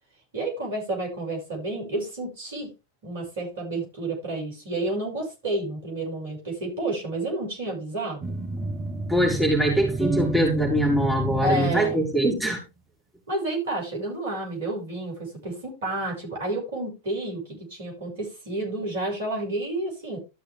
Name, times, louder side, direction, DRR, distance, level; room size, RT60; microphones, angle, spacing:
voice 1, 0.3-2.7 3.0-8.4 11.4-12.0 13.3-20.2, right 2 dB, 60° right, 6.5 m, -30 dB
sound 1, 8.2-12.4, right 2 dB, 15° right, 1.4 m, -30 dB
voice 2, 9.1-12.6, equal, ahead, 4.4 m, -23 dB
13.5 x 6.5 x 3.6 m
figure-of-eight pair, 90°, 0 cm